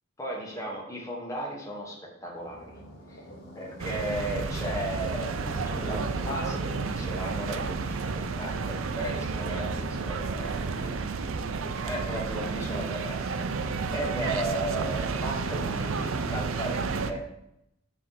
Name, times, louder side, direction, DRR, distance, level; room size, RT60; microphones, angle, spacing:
voice 1, 0.2-2.7 3.1-3.2 3.5-10.7 11.8-13.5 13.9-17.2, right 1 dB, 15° left, -3 dB, 1.4 m, -35 dB
sound 1, 2.2-11.3, equal, 45° left, 1.5 m, -45 dB
sound 2, 3.8-17.1, right 4 dB, 75° right, 0.5 m, -31 dB
7.9 x 3.4 x 5.7 m, 0.81 s
head